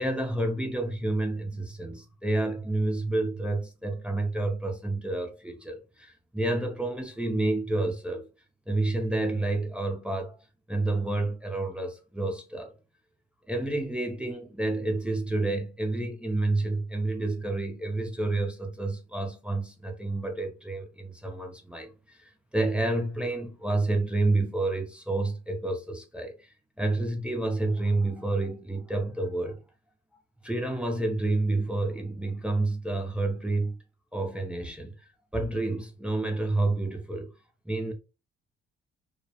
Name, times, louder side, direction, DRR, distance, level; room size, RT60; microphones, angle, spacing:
voice 1, 0.0-8.3 8.7-10.4 10.7-12.7 13.5-26.5 26.8-29.6 30.4-33.7 34.1-34.9 35.3-37.3 37.7-37.9, right 2 dB, 5° right, 0.4 m, -29 dB
2.2 x 2.0 x 2.7 m
cardioid pair, 90°, 20 cm